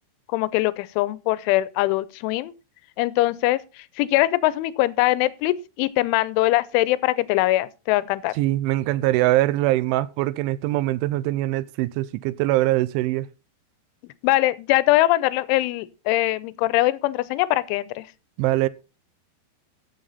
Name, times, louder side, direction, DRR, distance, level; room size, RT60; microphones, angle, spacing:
voice 1, 0.3-2.5 3.0-3.6 4.0-8.3 14.2-18.1, left 17 dB, 80° left, 3.2 m, -22 dB
voice 2, 8.4-13.3 18.4-18.7, right 16 dB, 80° right, 3.0 m, -22 dB
14.5 x 8.8 x 4.1 m
omnidirectional pair, 5.6 m